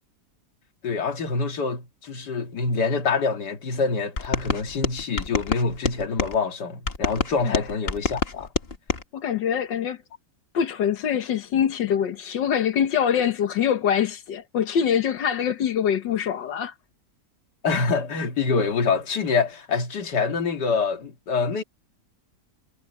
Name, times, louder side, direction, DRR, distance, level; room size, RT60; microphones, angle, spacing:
voice 1, 0.8-8.5 17.6-21.6, left 4 dB, 65° left, 2.4 m, -26 dB
sound 1, 4.2-6.4 6.9-9.0, left 4 dB, 35° left, 1.7 m, -27 dB
voice 2, 9.1-10.0 10.5-16.7, left 8 dB, 85° left, 1.9 m, -24 dB
omnidirectional pair, 1.9 m